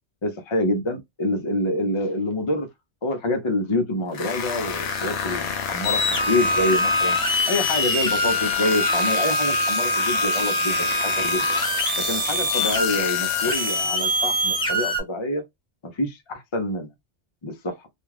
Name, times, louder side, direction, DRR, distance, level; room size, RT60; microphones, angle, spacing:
voice 1, 0.2-2.7 3.0-7.2 7.5-11.5 12.0-15.4 15.9-16.9 17.4-17.9, left 1 dB, 40° left, 0.4 m, -26 dB
sound 1, 4.1-14.3, left 7 dB, 75° left, 0.9 m, -30 dB
sound 2, 5.8-15.0, left 1 dB, 5° left, 0.8 m, -24 dB
Alarm, 8.6-11.6, right 5 dB, 60° right, 0.6 m, -37 dB
2.4 x 2.3 x 3.1 m
omnidirectional pair, 1.1 m